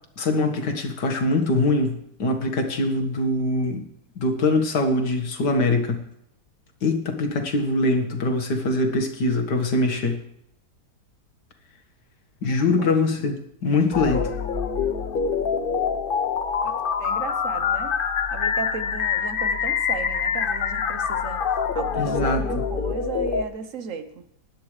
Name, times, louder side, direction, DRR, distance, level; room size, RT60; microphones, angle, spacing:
voice 1, 0.2-3.8 4.2-6.1 6.8-10.2 12.4-14.3 22.0-22.6, left 2 dB, 80° left, 4 dB, 2.2 m, -23 dB
voice 2, 12.4-12.9 16.6-18.0 18.3-21.4 21.7-24.2, right 5 dB, 55° right, 10 dB, 1.3 m, -35 dB
sound 1, 13.9-23.4, left 6 dB, 50° left, 0.7 m, -25 dB
20.5 x 10.5 x 3.3 m, 0.73 s
omnidirectional pair, 1.8 m